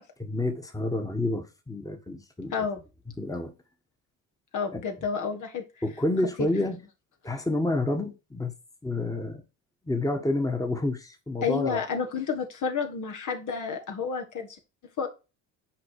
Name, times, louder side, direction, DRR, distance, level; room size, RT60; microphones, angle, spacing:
voice 1, 0.2-2.7 3.2-3.5 4.7-5.1 5.8-6.9 7.2-8.5 8.8-9.4 9.8-11.9, left 2 dB, 10° left, 1.5 m, -29 dB
voice 2, 2.5-2.8 4.5-5.6 6.4-6.5 11.4-14.5 15.0-15.1, left 6 dB, 55° left, 1.6 m, -30 dB
6.0 x 4.5 x 6.5 m
supercardioid pair, 75°, 36 cm